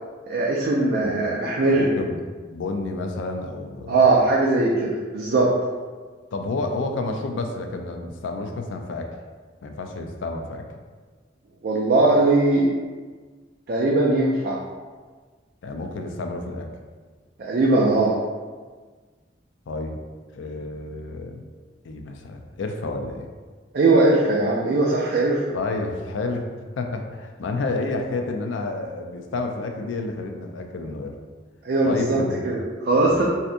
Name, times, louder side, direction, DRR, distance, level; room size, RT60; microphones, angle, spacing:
voice 1, 0.3-1.9 3.9-5.5 11.6-12.7 13.7-14.6 17.4-18.2 23.7-25.4 31.6-32.2 32.4-33.2, right 2 dB, 55° right, -4 dB, 0.4 m, -20 dB
voice 2, 1.7-2.2 2.5-4.0 6.3-9.1 9.6-10.7 15.6-16.7 19.7-20.0 20.3-21.5 21.8-23.3 25.5-26.5 26.8-31.2 31.8-32.4 33.1-33.2, left 3 dB, 80° left, 4 dB, 0.4 m, -30 dB
3.3 x 2.7 x 2.5 m, 1.4 s
head